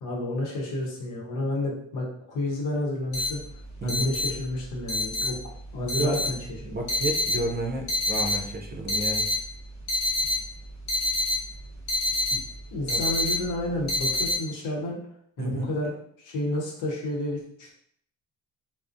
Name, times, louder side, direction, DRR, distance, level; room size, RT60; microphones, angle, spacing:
voice 1, 0.0-3.4 3.8-5.4 5.7-6.4 6.6-6.8 12.7-15.0 15.4-15.9 16.2-17.7, left 1 dB, 90° left, -2 dB, 0.8 m, -30 dB
sound 1, 3.1-14.3, left 1 dB, 65° left, 1.0 m, -27 dB
voice 2, 3.8-4.1 5.8-6.2 6.6-9.2 12.3-12.4 12.9-13.0 15.4-15.7, right 2 dB, 35° right, 2 dB, 0.5 m, -31 dB
2.4 x 2.1 x 2.5 m, 0.67 s
cardioid pair, 90°, 30 cm